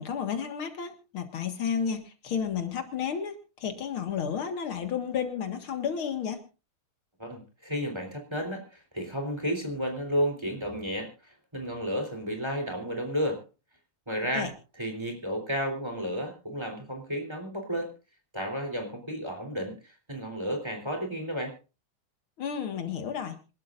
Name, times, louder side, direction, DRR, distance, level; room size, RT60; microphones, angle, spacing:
voice 1, 0.0-6.4 14.3-14.5 22.4-23.4, left 7 dB, 85° left, 7 dB, 2.6 m, -32 dB
voice 2, 7.2-13.4 14.1-17.9 18.3-21.5, equal, 10° right, 3 dB, 3.7 m, -32 dB
26.0 x 12.5 x 2.6 m, 0.31 s
omnidirectional pair, 2.3 m